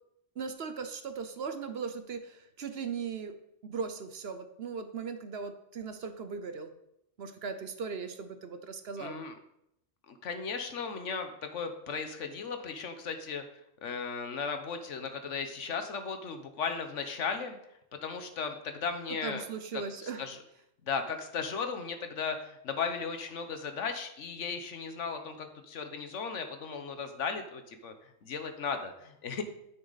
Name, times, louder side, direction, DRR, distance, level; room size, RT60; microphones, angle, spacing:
voice 1, 0.4-3.3 3.6-6.7 7.2-9.2 19.2-20.3, right 5 dB, 60° right, 9 dB, 1.0 m, -38 dB
voice 2, 9.0-9.3 10.1-13.4 13.8-17.6 18.0-19.4 20.2-20.4 20.9-27.9 28.2-29.4, left 5 dB, 75° left, 7 dB, 1.3 m, -36 dB
9.7 x 7.0 x 4.1 m, 0.79 s
omnidirectional pair, 1.3 m